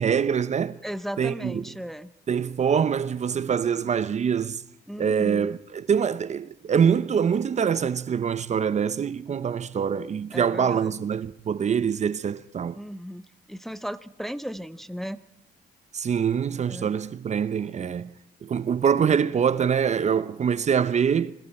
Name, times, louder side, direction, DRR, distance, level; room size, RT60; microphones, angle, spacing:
voice 1, 0.0-0.8 1.2-1.7 2.3-4.6 5.0-12.8 15.9-18.1 18.4-21.3, right 7 dB, 40° right, 0.7 m, -24 dB
voice 2, 0.8-2.1 4.9-5.6 10.3-10.9 12.7-13.2 13.5-15.2 16.7-16.9, equal, ahead, 0.7 m, -36 dB
28.0 x 21.5 x 4.3 m
cardioid pair, 95°, 18 cm